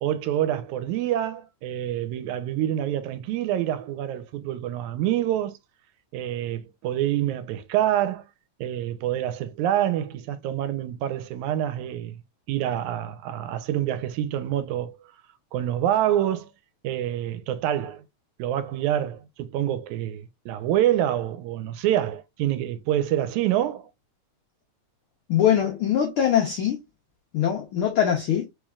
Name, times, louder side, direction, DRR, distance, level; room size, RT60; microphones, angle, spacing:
voice 1, 0.0-5.6 6.1-8.3 8.6-12.2 12.5-15.0 15.5-16.5 16.8-18.0 18.4-23.9, right 12 dB, 85° right, 2.0 m, -26 dB
voice 2, 25.3-26.8 27.3-28.5, left 9 dB, 90° left, 1.2 m, -22 dB
4.5 x 3.1 x 2.3 m
omnidirectional pair, 3.4 m